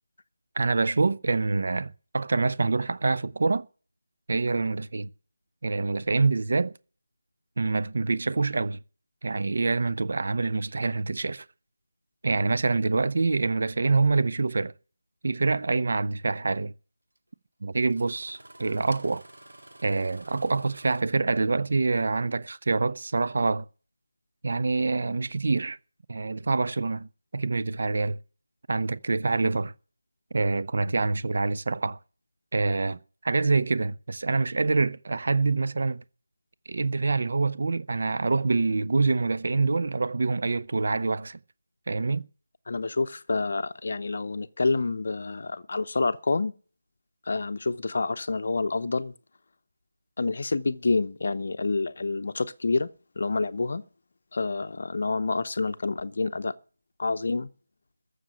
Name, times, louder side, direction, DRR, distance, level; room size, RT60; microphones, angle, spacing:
voice 1, 0.6-3.7 4.3-5.1 5.6-6.7 7.6-8.8 9.2-11.4 12.2-14.7 15.2-16.7 17.6-19.2 19.8-23.6 24.4-25.8 26.1-28.2 28.7-29.7 30.3-32.0 32.5-36.0 36.7-41.4 41.9-42.2, right 3 dB, 45° right, 0.6 m, -26 dB
Engine starting, 15.5-15.6 17.1-17.2 17.8-21.0, right 1 dB, 60° right, 1.8 m, -50 dB
voice 2, 42.7-46.5 47.3-49.1 50.2-52.9 53.2-53.8 54.3-56.5 57.0-57.5, left 3 dB, 45° left, 0.7 m, -28 dB
14.5 x 6.5 x 9.0 m
figure-of-eight pair, 160°, 0 cm